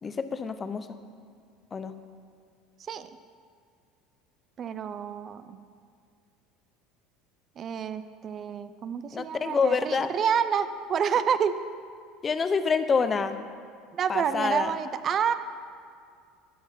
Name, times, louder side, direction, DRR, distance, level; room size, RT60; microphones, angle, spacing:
voice 1, 0.0-0.9 1.7-1.9 9.1-10.1 12.2-13.4 14.1-14.7, left 5 dB, 25° left, 10 dB, 0.7 m, -27 dB
voice 2, 4.6-5.6 7.6-11.6 13.9-15.3, right 7 dB, 35° right, 12 dB, 0.5 m, -28 dB
13.0 x 8.5 x 5.7 m, 2.2 s
supercardioid pair, 125°, 0 cm